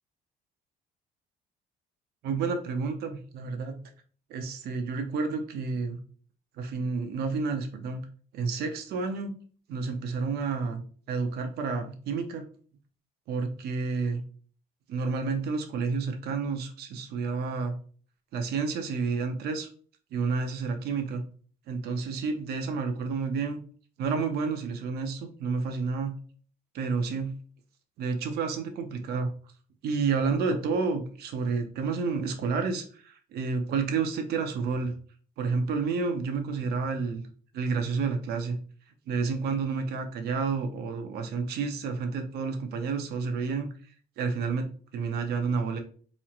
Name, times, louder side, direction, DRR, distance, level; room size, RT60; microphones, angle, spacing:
voice 1, 2.2-3.9 4.3-6.0 6.6-8.0 8.3-9.3 9.7-10.8 11.1-12.5 13.3-14.2 14.9-17.7 18.3-19.7 20.1-21.2 21.7-23.6 24.0-26.2 26.7-27.3 28.0-29.3 29.8-34.9 35.4-37.2 37.5-38.6 39.1-43.7 44.2-45.8, right 4 dB, 70° right, 5 dB, 0.7 m, -30 dB
4.2 x 3.1 x 2.4 m, 0.43 s
cardioid pair, 110°, 17 cm